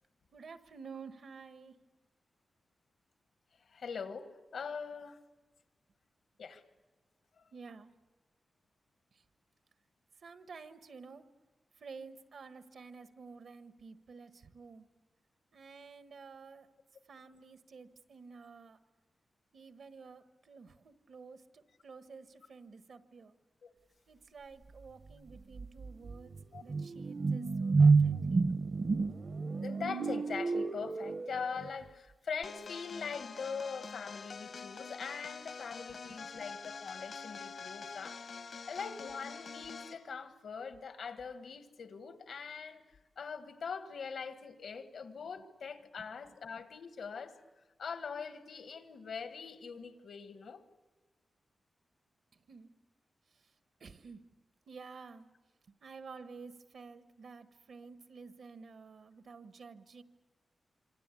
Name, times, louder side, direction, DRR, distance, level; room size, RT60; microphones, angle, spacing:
voice 1, 0.3-1.8 7.5-7.9 10.2-11.3 11.8-14.9 15.5-16.7 17.1-18.8 19.5-23.3 24.1-26.3 26.6-28.4 52.5-52.7 53.8-54.2 54.7-55.3 55.8-60.0, right 5 dB, 75° right, 1.3 m, -51 dB
voice 2, 3.6-5.2 6.4-6.6 23.6-23.7 26.5-26.6 29.6-38.4 38.7-47.4 47.8-50.6, left 5 dB, 90° left, 1.7 m, -42 dB
sound 1, 25.1-25.2 25.5-31.7, right 4 dB, 50° right, 0.8 m, -29 dB
sound 2, 32.4-40.0, left 5 dB, 60° left, 0.9 m, -46 dB
26.0 x 26.0 x 8.4 m
wide cardioid pair, 115°, 0 cm